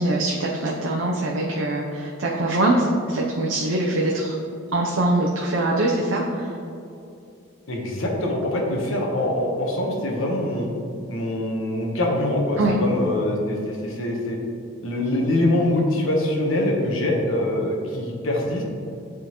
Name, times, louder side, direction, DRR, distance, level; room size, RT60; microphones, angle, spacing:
voice 1, 0.0-4.4 4.7-6.6 12.6-12.8, right 1 dB, 70° right, -2 dB, 0.6 m, -23 dB
voice 2, 7.7-10.7 11.1-14.4 14.8-18.6, left 1 dB, 75° left, 0 dB, 1.0 m, -24 dB
9.1 x 3.7 x 2.9 m, 2.6 s
head